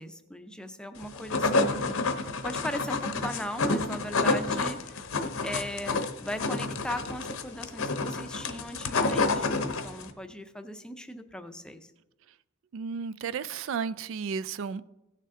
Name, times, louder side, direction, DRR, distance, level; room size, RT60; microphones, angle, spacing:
voice 1, 0.0-5.1 5.4-11.9, equal, 5° left, 8 dB, 0.5 m, -38 dB
sound 1, 1.0-10.1, left 3 dB, 70° left, 0.9 m, -29 dB
voice 2, 12.7-14.9, right 6 dB, 60° right, 16 dB, 0.3 m, -33 dB
16.5 x 6.6 x 3.7 m, 0.98 s
head